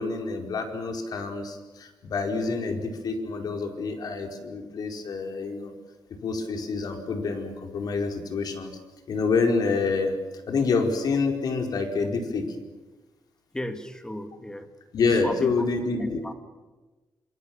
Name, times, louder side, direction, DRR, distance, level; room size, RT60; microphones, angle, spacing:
voice 1, 0.0-5.7 6.2-8.7 9.1-10.1 10.5-12.5 14.9-16.2, left 4 dB, 65° left, 3 dB, 4.8 m, -27 dB
voice 2, 13.5-14.7 15.2-15.6 16.0-16.3, left 1 dB, 10° left, 7 dB, 2.4 m, -34 dB
27.0 x 26.0 x 7.4 m, 1.2 s
wide cardioid pair, 125°, 7 cm